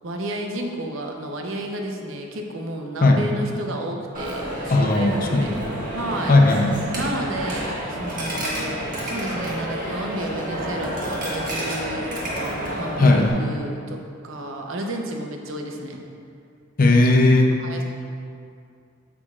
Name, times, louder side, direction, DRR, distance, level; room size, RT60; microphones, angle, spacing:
voice 1, 0.0-5.6 5.9-6.4 6.9-12.1 12.7-16.0 17.6-17.8, right 1 dB, 70° right, 2 dB, 0.8 m, -31 dB
Coin (dropping), 4.1-13.3, equal, 40° right, 1.5 m, -29 dB
voice 2, 4.7-5.5 6.3-6.7 8.3-8.4 13.0-13.3 16.8-17.5, left 2 dB, 45° left, 2 dB, 0.6 m, -16 dB
8.6 x 7.0 x 2.4 m, 2.4 s
head